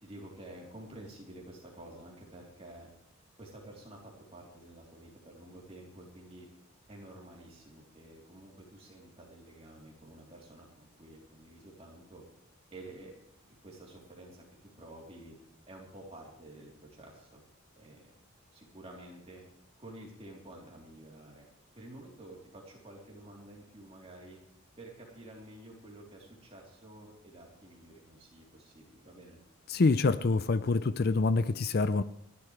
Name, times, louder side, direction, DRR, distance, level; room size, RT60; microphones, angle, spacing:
voice 1, 0.0-2.9 3.4-6.5 6.9-12.2 12.7-13.1 13.6-14.4 14.8-15.4 15.7-17.4 17.7-18.1 18.5-19.4 19.8-21.4 21.8-24.4 24.8-29.4, right 1 dB, 25° right, -2 dB, 3.5 m, -50 dB
voice 2, 29.7-32.0, left 3 dB, 45° left, 13 dB, 0.4 m, -26 dB
28.5 x 11.5 x 3.3 m, 0.74 s
head